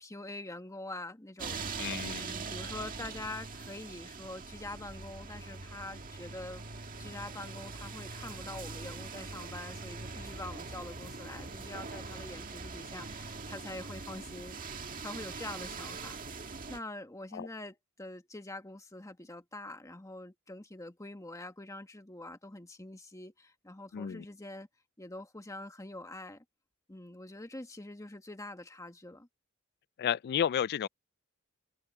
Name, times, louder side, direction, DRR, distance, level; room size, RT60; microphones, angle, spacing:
voice 1, 0.0-1.7 2.2-6.6 7.0-14.6 14.9-16.1 16.7-24.7 25.0-26.4 26.9-29.3, left 2 dB, 15° left, 1.3 m, -45 dB
sound 1, 1.4-16.8, right 4 dB, 40° right, 1.8 m, -42 dB
voice 2, 1.8-2.3 17.3-17.5 23.9-24.2 30.0-30.9, left 9 dB, 50° left, 0.3 m, -32 dB
head